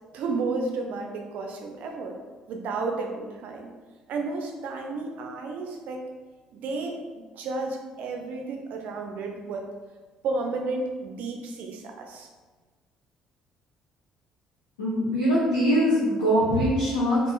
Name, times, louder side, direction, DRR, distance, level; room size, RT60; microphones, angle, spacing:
voice 1, 0.1-2.2 2.5-3.7 4.1-6.0 6.5-9.6 10.2-12.3, right 3 dB, 55° right, 2 dB, 0.4 m, -32 dB
voice 2, 14.8-17.2, equal, 75° left, -9 dB, 0.6 m, -22 dB
3.5 x 2.3 x 2.2 m, 1.4 s
figure-of-eight pair, 50°, 3 cm